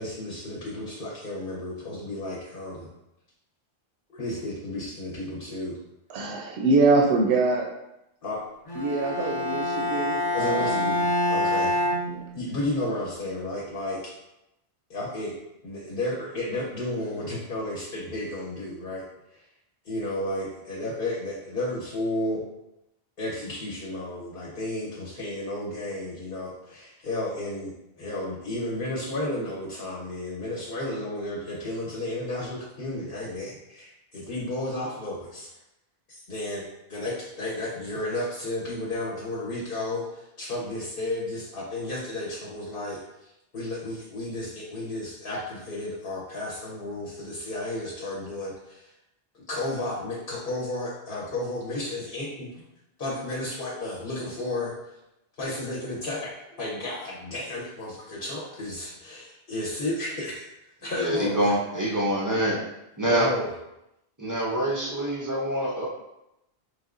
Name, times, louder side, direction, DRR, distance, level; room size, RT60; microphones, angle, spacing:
voice 1, 0.0-2.9 4.1-5.8 8.2-8.4 10.3-11.8 12.3-14.1 14.9-15.4 15.6-19.0 19.3-19.5 19.8-22.4 23.2-35.5 36.1-48.9 49.3-52.6 53.0-55.0 55.3-62.0 63.0-63.5, left 1 dB, 55° left, -5 dB, 1.0 m, -33 dB
voice 2, 6.1-7.6 8.8-10.9 12.1-12.2, right 3 dB, 75° right, 1 dB, 0.8 m, -24 dB
Bowed string instrument, 8.7-12.8, left 1 dB, 40° left, 0.6 m, -26 dB
voice 3, 61.0-62.6 63.0-63.3 64.2-65.9, right 1 dB, 25° right, -4 dB, 0.4 m, -25 dB
4.1 x 3.3 x 2.4 m, 0.88 s
omnidirectional pair, 1.1 m